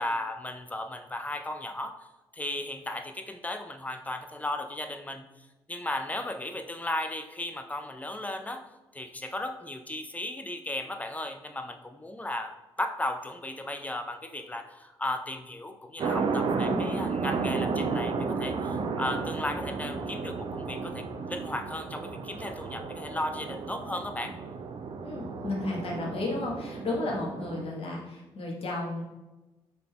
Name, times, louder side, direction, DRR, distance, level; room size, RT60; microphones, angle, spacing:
voice 1, 0.0-2.1 2.3-5.3 5.7-8.7 8.9-24.3, left 1 dB, 10° left, 7 dB, 0.5 m, -35 dB
sound 1, 16.0-27.6, right 4 dB, 40° right, 0.5 m, -33 dB
voice 2, 16.6-17.0 25.0-29.0, left 2 dB, 45° left, -2 dB, 1.2 m, -33 dB
5.8 x 3.4 x 2.2 m, 1.0 s
figure-of-eight pair, 40°, 13 cm